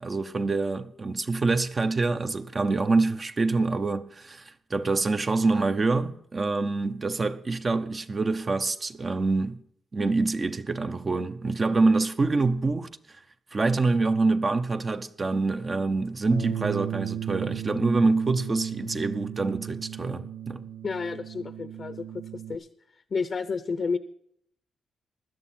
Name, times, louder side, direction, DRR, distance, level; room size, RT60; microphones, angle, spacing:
voice 1, 0.0-9.6 9.9-12.9 13.5-20.7, right 3 dB, 30° right, 0.7 m, -26 dB
Bass guitar, 16.3-22.6, right 10 dB, 85° right, 0.5 m, -35 dB
voice 2, 20.8-22.1 22.3-22.7 23.1-24.0, left 5 dB, 40° left, 0.7 m, -30 dB
16.5 x 12.0 x 4.3 m
cardioid pair, 125°, 0 cm